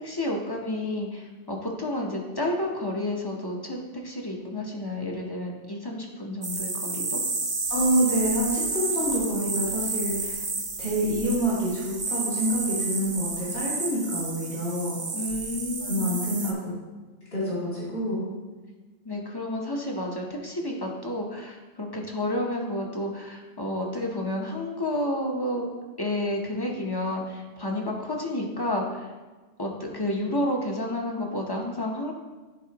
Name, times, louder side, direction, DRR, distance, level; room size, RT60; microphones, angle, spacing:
voice 1, 0.0-7.2 15.1-16.6 19.0-25.6 26.0-29.1 29.6-32.1, left 1 dB, 25° left, 0 dB, 0.7 m, -30 dB
sound 1, 6.4-16.5, right 3 dB, 35° right, 0.4 m, -31 dB
voice 2, 7.7-10.3 10.8-15.0 15.8-16.7 17.3-18.3, equal, 65° left, -8 dB, 2.7 m, -27 dB
11.0 x 4.3 x 2.9 m, 1.3 s
omnidirectional pair, 1.3 m